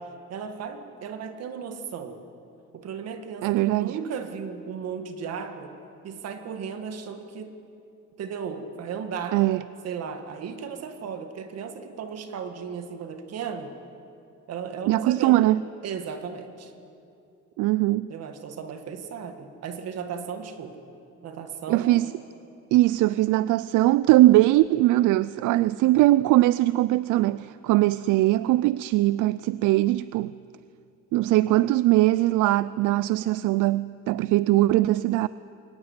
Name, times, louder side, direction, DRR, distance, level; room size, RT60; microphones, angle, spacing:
voice 1, 0.0-2.2 2.7-5.7 6.0-7.5 8.2-9.4 9.8-13.7 14.5-15.4 15.8-16.7 18.1-20.8 21.2-22.0, right 6 dB, 55° right, 1.8 m, -35 dB
voice 2, 3.4-4.0 9.3-9.6 14.9-15.6 17.6-18.1 21.7-22.1 22.7-30.3 31.1-35.3, right 16 dB, 75° right, 0.5 m, -21 dB
22.5 x 18.5 x 9.6 m
cardioid pair, 180°, 31 cm